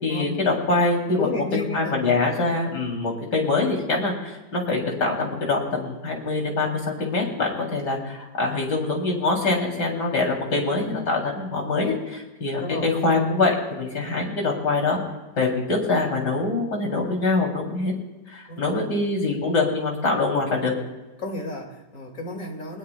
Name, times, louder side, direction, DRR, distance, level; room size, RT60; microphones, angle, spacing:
voice 1, 0.0-1.3 1.5-15.0 15.4-17.9 18.3-20.7, left 3 dB, 85° left, 0 dB, 4.1 m, -24 dB
voice 2, 1.2-2.0 12.6-12.9 18.5-18.7 21.2-22.8, left 2 dB, 55° left, 1 dB, 3.0 m, -32 dB
22.5 x 20.0 x 2.4 m, 1.1 s
omnidirectional pair, 1.8 m